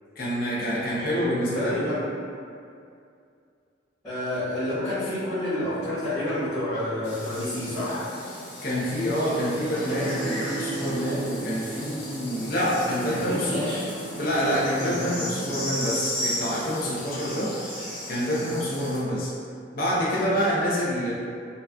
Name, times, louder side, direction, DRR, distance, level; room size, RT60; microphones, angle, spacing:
voice 1, 0.2-1.8 8.6-13.7 14.1-17.8 18.1-19.3 19.7-21.1, equal, 50° left, -7 dB, 0.6 m, -27 dB
voice 2, 1.5-2.0 4.0-8.1 13.1-13.9 14.8-15.1, left 1 dB, 15° left, -19 dB, 1.2 m, -29 dB
sound 1, 7.0-19.0, left 1 dB, 80° left, 1.3 m, -35 dB
sound 2, 9.5-15.5, right 4 dB, 65° left, 0.9 m, -39 dB
3.9 x 2.3 x 2.3 m, 2.4 s
head